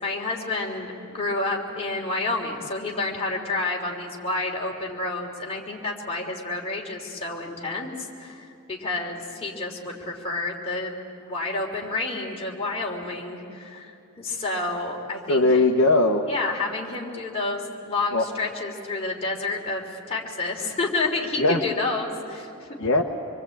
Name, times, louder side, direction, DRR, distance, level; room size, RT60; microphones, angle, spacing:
voice 1, 0.0-10.9 11.2-15.6 16.3-22.7, left 3 dB, 30° left, -1 dB, 3.3 m, -29 dB
voice 2, 15.3-16.2 18.1-18.2 21.4-21.6 22.8-23.0, left 2 dB, 65° left, 3 dB, 1.1 m, -19 dB
26.0 x 23.0 x 8.6 m, 2.6 s
head